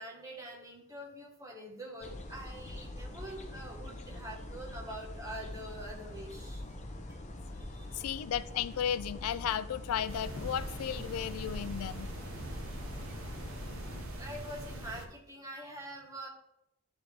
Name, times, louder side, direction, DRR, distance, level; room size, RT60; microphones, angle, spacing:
voice 1, 0.0-6.6 7.1-7.2 7.5-8.0 14.2-16.3, right 1 dB, 15° right, -2 dB, 1.7 m, -45 dB
sound 1, 2.0-14.0, left 1 dB, 30° left, 0.8 m, -44 dB
voice 2, 7.9-12.1 13.9-14.1, left 9 dB, 85° left, 16 dB, 0.3 m, -34 dB
sound 2, 10.1-15.1, right 1 dB, 65° right, 1.2 m, -42 dB
12.5 x 4.5 x 3.5 m, 0.80 s
head